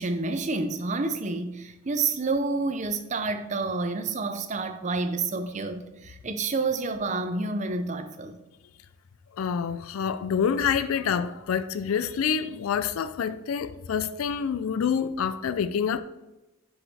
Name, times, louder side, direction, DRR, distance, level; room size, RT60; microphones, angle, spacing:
voice 1, 0.0-8.4, right 3 dB, 35° right, 0.5 m, -29 dB
voice 2, 9.4-16.0, left 7 dB, 80° left, 0.4 m, -27 dB
6.6 x 4.8 x 4.1 m
head